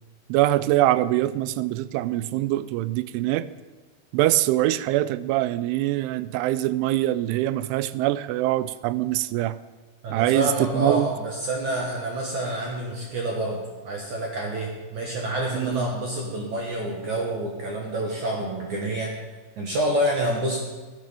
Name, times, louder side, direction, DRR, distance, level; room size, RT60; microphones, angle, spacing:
voice 1, 0.3-3.5 4.1-9.6 10.1-11.1 15.5-15.9, right 15 dB, 85° right, 16 dB, 3.0 m, -23 dB
voice 2, 10.0-19.1 19.6-20.6, right 1 dB, 55° right, -1 dB, 2.2 m, -28 dB
15.0 x 9.3 x 7.0 m, 1.3 s
omnidirectional pair, 5.5 m